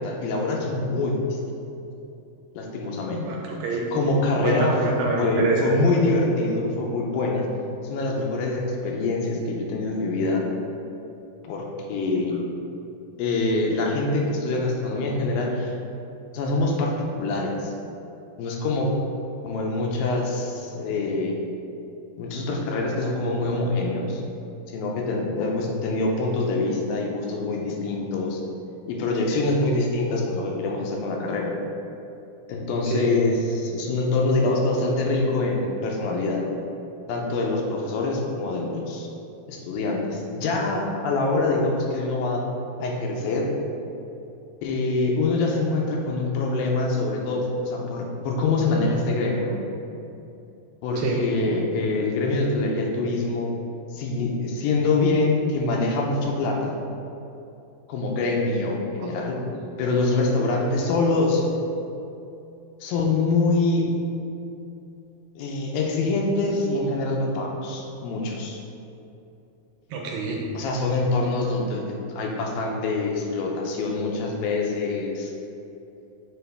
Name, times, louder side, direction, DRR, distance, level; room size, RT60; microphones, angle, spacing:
voice 1, 0.0-1.4 2.6-3.2 3.9-4.8 5.2-7.5 7.8-10.4 11.4-12.4 13.2-15.7 16.3-17.7 18.4-18.9 19.4-21.4 22.2-24.2 24.7-28.4 28.9-31.5 32.5-36.5 37.1-39.1 39.5-42.4 42.8-43.5 44.6-49.6 50.8-53.5 53.9-56.8 57.9-59.4 59.8-61.4 62.8-63.9 65.4-68.6 70.6-71.8 72.2-75.3, left 2 dB, 85° left, 0 dB, 2.4 m, -25 dB
voice 2, 3.1-4.0 4.4-5.7 32.9-33.1 51.0-51.3 59.0-59.7 69.9-70.4, right 4 dB, 80° right, -1 dB, 2.1 m, -28 dB
6.9 x 4.3 x 3.4 m, 2.8 s
omnidirectional pair, 4.3 m